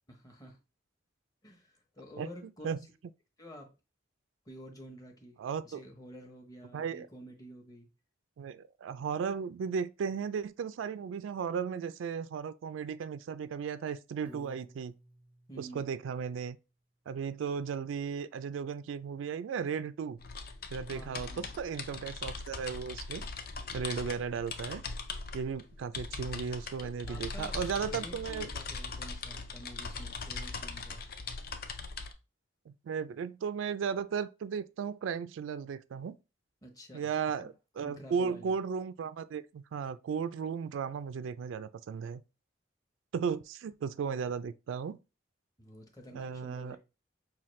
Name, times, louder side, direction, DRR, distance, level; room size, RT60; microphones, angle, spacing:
voice 1, 0.1-0.6 1.4-2.7 3.4-3.7 4.5-5.4 5.6-7.9 15.5-15.9 20.9-21.6 26.8-31.0 36.6-37.1 37.4-37.5 37.8-38.6 45.6-46.8, equal, 20° left, 0.8 m, -50 dB
voice 2, 5.4-5.8 6.7-7.1 8.4-14.9 15.6-16.6 17.1-20.2 20.7-23.3 23.7-24.8 25.3-28.5 32.7-36.2 36.9-42.2 43.1-45.0 46.1-46.8, right 6 dB, 85° right, 0.3 m, -35 dB
Piano, 14.2-16.5, equal, 10° right, 0.5 m, -55 dB
sound 1, 20.2-32.1, left 4 dB, 50° left, 0.5 m, -40 dB
5.6 x 2.3 x 3.1 m
head